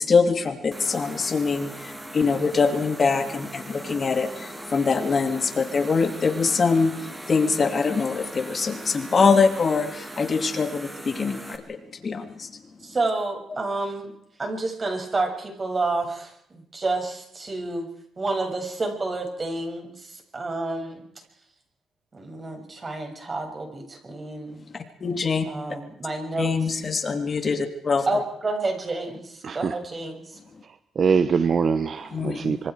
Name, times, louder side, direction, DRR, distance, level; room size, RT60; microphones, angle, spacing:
voice 1, 0.0-12.6 24.7-25.5 26.4-28.2 32.1-32.6, left 5 dB, 40° left, 6 dB, 2.9 m, -24 dB
sound 1, 0.7-11.6, right 1 dB, 15° right, 3.3 m, -39 dB
voice 2, 12.8-14.1 14.4-17.9 18.2-21.0 22.1-24.6 25.5-26.5 28.1-30.3, right 3 dB, 30° right, 3 dB, 7.1 m, -29 dB
voice 3, 29.4-29.8 30.6-32.7, right 6 dB, 50° right, 11 dB, 1.2 m, -24 dB
26.0 x 25.0 x 4.9 m, 0.74 s
cardioid pair, 90°, 0 cm